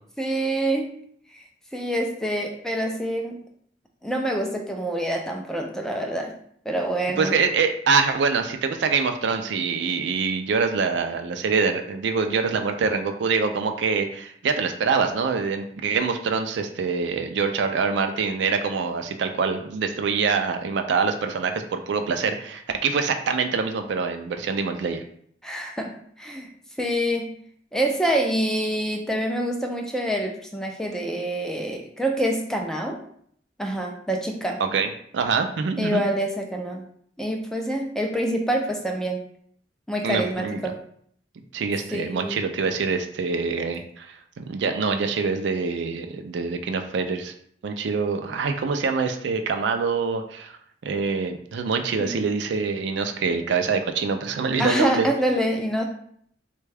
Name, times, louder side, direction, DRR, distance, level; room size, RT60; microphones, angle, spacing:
voice 1, 0.2-0.9 1.7-3.4 4.0-6.3 6.7-7.4 25.4-26.5 26.8-27.3 27.7-33.0 33.6-34.6 35.8-36.9 37.2-39.2 39.9-40.8 41.9-42.4 52.0-52.1 54.6-55.9, right 1 dB, 5° left, 2 dB, 0.4 m, -26 dB
voice 2, 7.2-25.0 34.6-36.0 40.0-40.7 41.5-47.3 47.6-50.6 50.8-55.1, right 5 dB, 70° right, 6 dB, 0.4 m, -25 dB
3.4 x 2.2 x 3.3 m, 0.64 s
head